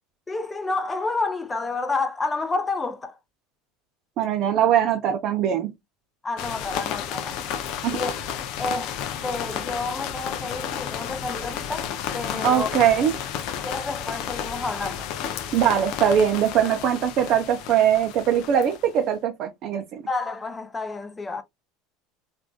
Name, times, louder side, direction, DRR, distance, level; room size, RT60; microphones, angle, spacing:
voice 1, 0.3-3.2 6.2-7.4 7.9-8.1 8.6-12.7 13.6-15.1 20.1-21.4, left 3 dB, 20° left, 0.6 m, -30 dB
voice 2, 4.2-5.7 7.8-7.9 12.4-13.1 15.5-20.0, right 9 dB, 55° right, 0.6 m, -21 dB
sound 1, 6.4-19.0, left 9 dB, 60° left, 0.5 m, -32 dB
Gasp, 12.1-12.7, left 7 dB, 85° left, 1.0 m, -41 dB
3.5 x 2.5 x 2.3 m
hypercardioid pair, 95°, 0 cm